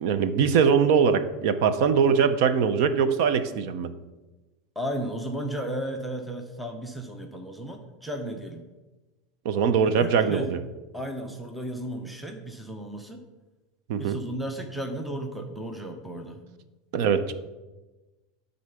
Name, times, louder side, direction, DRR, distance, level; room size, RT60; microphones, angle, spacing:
voice 1, 0.0-3.9 9.4-10.6 13.9-14.2 16.9-17.3, right 6 dB, 55° right, 12 dB, 0.6 m, -22 dB
voice 2, 4.8-8.6 10.0-10.5 10.9-13.2 14.0-16.4, right 1 dB, ahead, 4 dB, 0.6 m, -34 dB
9.8 x 3.9 x 6.8 m, 1.1 s
supercardioid pair, 170°, 2 cm